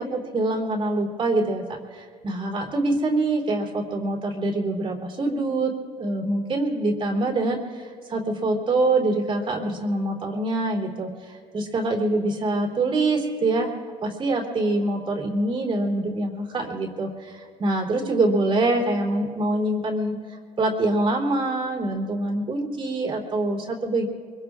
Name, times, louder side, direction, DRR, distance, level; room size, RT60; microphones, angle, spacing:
voice 1, 0.0-13.7 14.0-20.1 20.6-24.0, right 2 dB, 45° right, 0 dB, 3.3 m, -25 dB
24.5 x 23.5 x 2.5 m, 2.1 s
cardioid pair, 85°, 13 cm